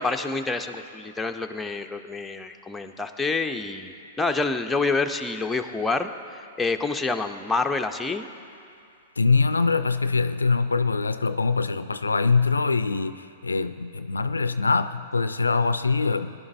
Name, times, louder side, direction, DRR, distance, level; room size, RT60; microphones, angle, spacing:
voice 1, 0.0-8.3, left 3 dB, 10° left, 5 dB, 0.5 m, -27 dB
voice 2, 9.2-16.3, left 4 dB, 90° left, 12 dB, 0.3 m, -23 dB
18.0 x 10.5 x 2.6 m, 2.5 s
hypercardioid pair, 110°, 0 cm